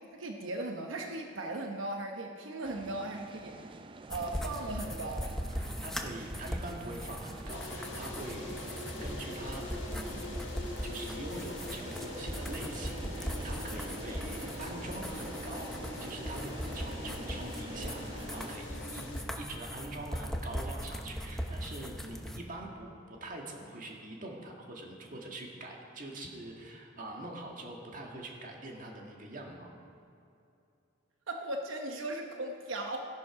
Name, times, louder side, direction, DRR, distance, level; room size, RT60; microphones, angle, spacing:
voice 1, 0.0-3.8 4.1-5.3 31.3-33.0, right 2 dB, 85° right, 3 dB, 0.9 m, -38 dB
sound 1, 2.6-18.5, right 2 dB, 25° right, 0.4 m, -47 dB
sound 2, 4.1-22.4, equal, ahead, 0.7 m, -39 dB
voice 2, 5.5-10.4 10.8-15.7 16.0-19.1 19.4-29.7, right 2 dB, 45° right, 0 dB, 1.7 m, -44 dB
sound 3, 7.5-19.2, left 2 dB, 65° left, 1.6 m, -44 dB
15.0 x 11.0 x 4.8 m, 2.7 s
head